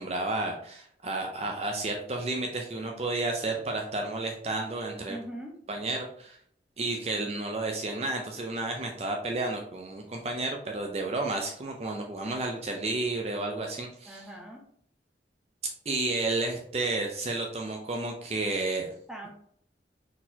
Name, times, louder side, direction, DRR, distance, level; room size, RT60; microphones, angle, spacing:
voice 1, 0.0-5.2 5.7-6.4 6.8-14.3 15.9-18.9, right 2 dB, 35° right, 2 dB, 0.5 m, -31 dB
voice 2, 5.1-5.6 14.1-14.6 19.1-19.3, right 1 dB, 5° right, 0 dB, 0.8 m, -41 dB
4.3 x 4.0 x 2.8 m, 0.64 s
head